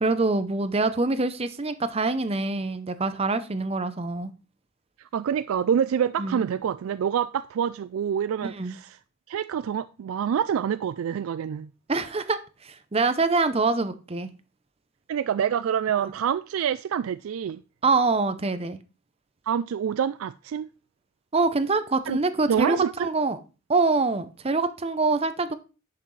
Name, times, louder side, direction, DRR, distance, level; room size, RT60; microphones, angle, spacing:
voice 1, 0.0-4.3 6.2-6.4 8.4-8.8 11.9-12.4 12.6-14.3 17.8-18.8 21.3-23.4 23.7-25.5, right 3 dB, 30° right, 0.7 m, -25 dB
voice 2, 5.0-9.0 9.3-11.7 15.1-17.6 19.5-20.7 22.1-22.2 22.5-23.1, right 8 dB, 85° right, 0.3 m, -26 dB
10.5 x 5.8 x 3.2 m
head